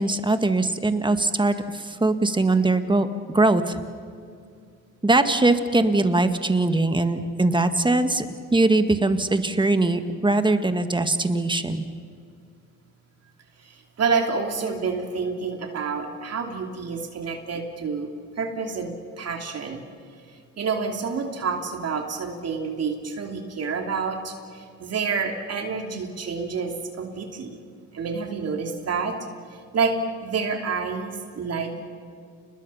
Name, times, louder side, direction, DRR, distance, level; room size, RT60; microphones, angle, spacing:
voice 1, 0.0-3.1 3.3-3.8 5.0-8.2 8.5-11.8, right 2 dB, 15° right, 8 dB, 1.8 m, -21 dB
voice 2, 13.6-19.8 20.6-27.6 27.9-29.1 29.7-29.9 30.2-31.8, right 5 dB, 55° right, 3 dB, 3.0 m, -28 dB
29.5 x 20.5 x 5.7 m, 2.3 s
cardioid pair, 90°, 30 cm